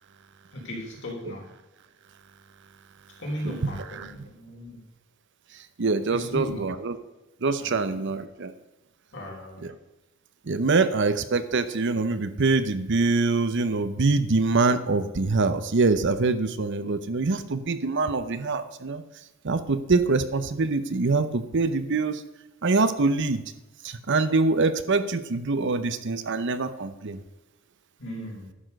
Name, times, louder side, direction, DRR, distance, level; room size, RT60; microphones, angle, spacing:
voice 1, 0.5-1.5 3.2-4.8 6.1-6.7 7.6-8.2 9.1-9.7 28.0-28.5, equal, 60° left, -2 dB, 3.7 m, -36 dB
voice 2, 3.4-4.1 5.8-7.0 7.4-8.5 9.6-9.7 10.5-19.0 19.4-22.2 22.6-23.4 23.8-27.2, right 3 dB, 60° right, 12 dB, 0.7 m, -24 dB
11.0 x 6.2 x 6.5 m, 1.1 s
head